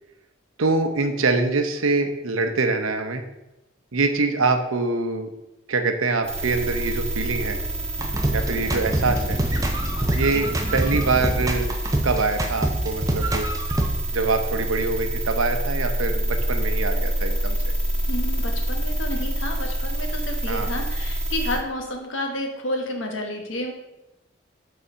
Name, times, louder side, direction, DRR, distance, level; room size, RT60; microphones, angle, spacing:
voice 1, 0.6-3.2 3.9-5.3 5.7-7.6 8.3-9.4 10.1-10.5 10.7-11.7 12.0-13.5 14.1-17.6 20.5-20.7, right 3 dB, 90° right, 7 dB, 0.8 m, -24 dB
sound 1, 6.2-21.6, right 1 dB, 5° left, 1.7 m, -27 dB
sound 2, 8.0-13.9, right 1 dB, 15° right, 0.7 m, -25 dB
voice 2, 18.1-23.7, left 1 dB, 70° left, 3 dB, 1.3 m, -30 dB
6.9 x 4.2 x 5.0 m, 0.95 s
head